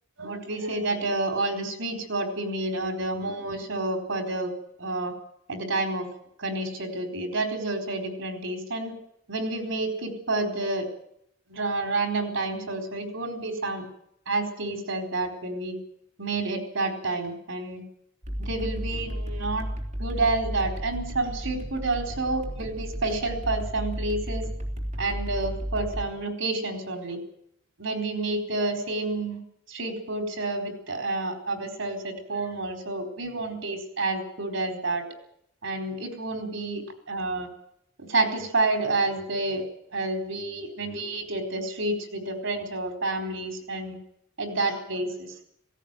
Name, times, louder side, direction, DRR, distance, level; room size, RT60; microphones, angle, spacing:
voice 1, 0.2-4.5 4.8-5.1 5.5-6.1 6.4-8.9 9.3-10.9 11.5-13.8 14.3-15.8 16.2-17.8 18.4-19.6 20.0-24.4 25.0-27.2 27.8-29.4 29.7-35.0 35.6-37.5 38.0-39.6 39.9-44.0 44.4-45.4, right 2 dB, 80° right, 4 dB, 4.4 m, -29 dB
sound 1, 18.2-26.0, equal, 40° right, 3.6 m, -33 dB
17.5 x 17.0 x 9.1 m, 0.74 s
head